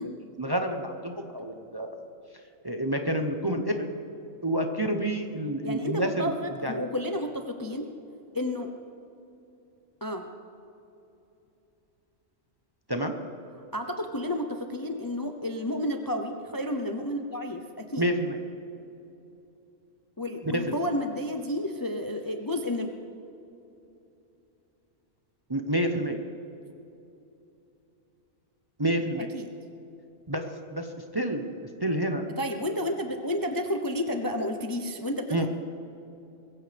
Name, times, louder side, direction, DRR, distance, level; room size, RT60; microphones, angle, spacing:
voice 1, 0.0-1.9 2.6-3.9 4.4-6.3 6.6-6.8 12.9-13.2 18.0-18.4 20.7-20.8 25.5-26.2 28.8-29.3 30.3-30.4 30.7-30.9 31.1-31.4 31.8-32.2 35.3-35.5, right 1 dB, 20° right, 4 dB, 0.7 m, -28 dB
voice 2, 5.6-7.9 8.3-8.7 10.0-10.3 13.7-18.1 20.2-22.9 29.2-29.5 32.4-35.5, left 1 dB, 20° left, 5 dB, 0.6 m, -31 dB
21.5 x 15.5 x 3.4 m, 2.8 s
omnidirectional pair, 1.4 m